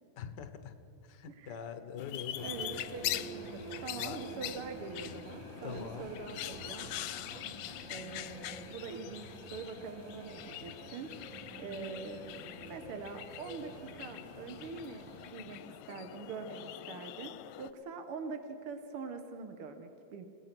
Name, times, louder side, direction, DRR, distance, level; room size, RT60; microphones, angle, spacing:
voice 1, 0.2-0.7 1.0-2.8 4.0-4.2 5.6-6.1, left 7 dB, 60° left, 8 dB, 1.1 m, -43 dB
sound 1, 2.0-17.7, left 14 dB, 75° left, 1.9 m, -44 dB
sound 2, 2.3-15.3, right 2 dB, 30° right, 1.8 m, -49 dB
voice 2, 2.4-6.9 7.6-12.3 12.7-16.6 16.9-20.3, right 4 dB, 55° right, 6 dB, 1.8 m, -44 dB
29.0 x 18.5 x 6.1 m, 2.5 s
omnidirectional pair, 3.6 m